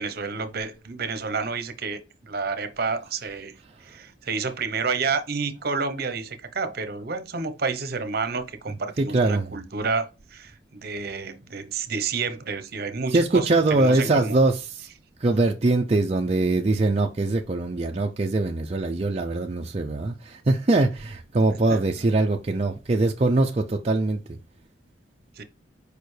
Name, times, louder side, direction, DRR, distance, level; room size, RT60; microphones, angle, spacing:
voice 1, 0.0-14.4 21.7-21.8 25.4-25.5, right 4 dB, 60° right, 0.9 m, -30 dB
voice 2, 9.0-9.5 13.1-14.9 15.2-24.4, right 2 dB, 35° right, 0.5 m, -22 dB
6.7 x 5.0 x 3.2 m
head